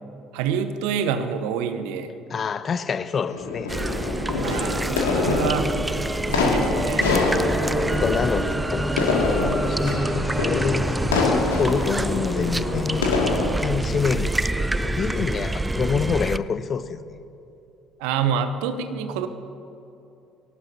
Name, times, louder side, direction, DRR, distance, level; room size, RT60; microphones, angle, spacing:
voice 1, 0.3-2.1 4.4-5.7 6.4-7.2 18.0-19.3, right 7 dB, 65° right, 0.9 m, -27 dB
voice 2, 2.3-3.7 7.6-13.0 13.6-17.2, left 6 dB, 40° left, 0.7 m, -27 dB
sound 1, 3.3-13.5, left 3 dB, 75° left, 2.2 m, -25 dB
sound 2, 3.7-16.4, right 2 dB, 10° right, 0.4 m, -26 dB
24.0 x 18.0 x 2.8 m
figure-of-eight pair, 55°, 0 cm